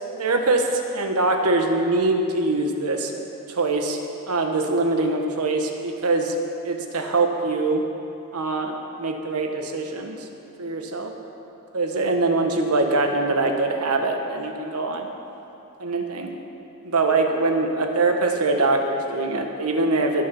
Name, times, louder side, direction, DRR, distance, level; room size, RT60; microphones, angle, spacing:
voice 1, 0.2-3.1 3.5-4.0 4.3-6.3 6.6-7.8 8.3-10.2 10.6-11.1 11.7-15.1 15.8-16.3 16.8-20.2, right 2 dB, 85° right, 4 dB, 1.3 m, -23 dB
20.5 x 7.1 x 5.5 m, 2.9 s
head